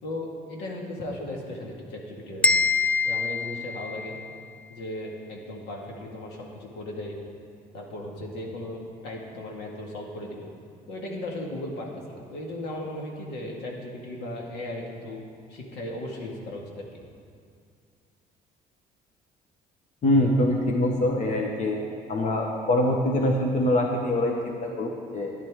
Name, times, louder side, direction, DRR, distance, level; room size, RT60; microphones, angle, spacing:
voice 1, 0.0-2.5 3.0-4.2 4.7-7.2 7.7-10.5 10.9-15.2 15.5-17.0, left 1 dB, 85° left, -1 dB, 2.0 m, -36 dB
sound 1, 2.4-4.4, left 4 dB, 10° left, 0.4 m, -25 dB
voice 2, 20.0-21.8 22.1-25.3, left 1 dB, 45° left, 1 dB, 1.2 m, -24 dB
12.0 x 10.5 x 3.7 m, 2.2 s
cardioid pair, 110°, 17 cm